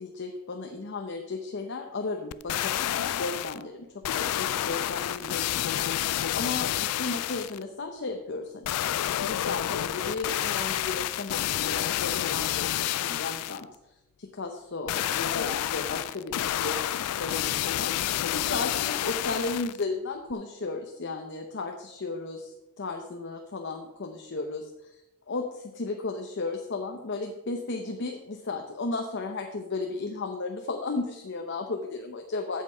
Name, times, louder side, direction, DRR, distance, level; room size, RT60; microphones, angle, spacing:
voice 1, 0.0-13.7 14.2-17.9 18.3-25.0 25.3-32.6, left 3 dB, 55° left, 3 dB, 0.8 m, -35 dB
sound 1, 2.3-3.6 4.0-7.6 8.6-13.6 14.9-19.8 20.3-20.4, left 12 dB, 90° left, 0.4 m, -29 dB
8.3 x 7.5 x 5.6 m, 0.94 s
head